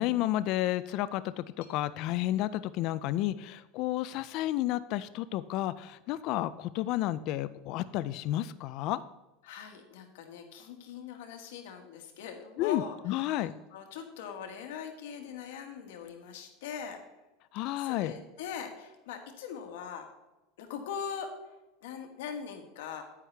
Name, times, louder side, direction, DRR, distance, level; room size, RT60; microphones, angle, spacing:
voice 1, 0.0-9.0 12.6-13.5 17.5-18.1, left 14 dB, 45° left, 15 dB, 0.3 m, -31 dB
voice 2, 9.4-17.0 17.5-20.1 20.6-21.3 21.8-23.0, left 7 dB, 80° left, 4 dB, 1.6 m, -41 dB
9.7 x 9.3 x 3.3 m, 1.0 s
supercardioid pair, 170°, 0 cm